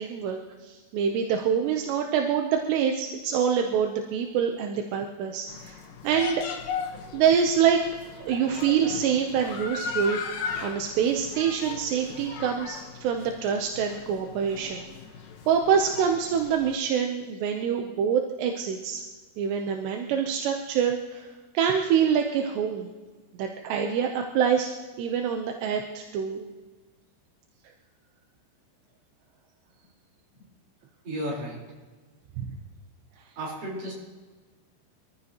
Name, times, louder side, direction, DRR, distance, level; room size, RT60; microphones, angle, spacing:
voice 1, 0.0-6.4 7.1-7.9 8.2-10.2 10.6-14.9 15.5-19.0 19.4-21.3 21.5-22.9 23.4-26.5 32.4-32.5, right 7 dB, 75° right, 3 dB, 2.7 m, -26 dB
sound 1, 5.5-16.7, left 5 dB, 70° left, 2.1 m, -38 dB
voice 2, 31.0-31.6 33.4-33.9, equal, 45° right, -4 dB, 5.7 m, -33 dB
26.0 x 14.0 x 3.0 m, 1.3 s
omnidirectional pair, 5.6 m